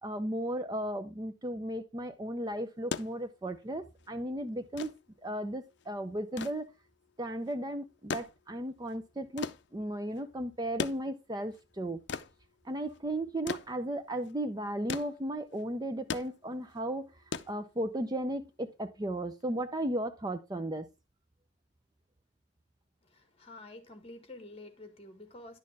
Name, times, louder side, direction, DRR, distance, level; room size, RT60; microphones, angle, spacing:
voice 1, 0.0-4.9 5.2-6.7 7.2-12.0 12.6-17.1 17.5-20.9, right 1 dB, 20° right, 0.6 m, -35 dB
sound 1, 2.7-18.2 19.4-19.5, left 5 dB, 65° left, 0.5 m, -41 dB
voice 2, 23.0-25.6, left 2 dB, 30° left, 1.7 m, -49 dB
10.5 x 6.5 x 3.5 m
head